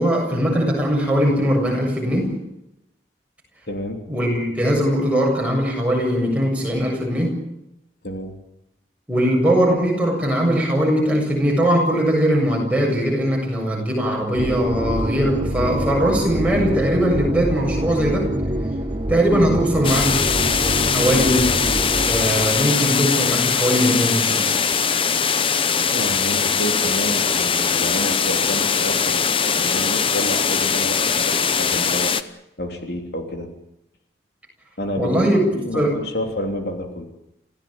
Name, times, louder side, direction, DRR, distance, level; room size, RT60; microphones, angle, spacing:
voice 1, 0.0-2.4 4.1-7.4 9.1-18.3 19.1-20.2 20.9-21.5 22.1-24.5 35.0-35.5 35.7-36.0, equal, 5° right, -1 dB, 7.5 m, -20 dB
voice 2, 3.7-4.0 8.0-8.3 25.9-33.5 34.8-35.2 35.5-37.1, equal, 65° left, 4 dB, 3.4 m, -29 dB
sound 1, 14.4-22.7, right 1 dB, 25° right, 1.5 m, -26 dB
sound 2, 19.8-32.2, left 6 dB, 30° left, 0.9 m, -21 dB
27.5 x 16.5 x 8.9 m, 0.85 s
head